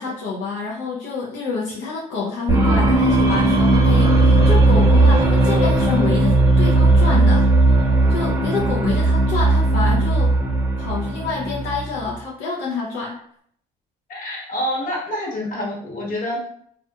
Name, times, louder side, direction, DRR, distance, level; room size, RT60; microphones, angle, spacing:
voice 1, 0.0-7.5 8.1-10.3 10.8-13.2, left 4 dB, 90° left, -4 dB, 0.6 m, -27 dB
sound 1, 2.5-12.1, right 2 dB, 20° right, 0.8 m, -16 dB
voice 2, 14.1-16.4, equal, 55° left, -4 dB, 1.1 m, -27 dB
2.6 x 2.4 x 2.2 m, 0.65 s
cardioid pair, 110°, 17 cm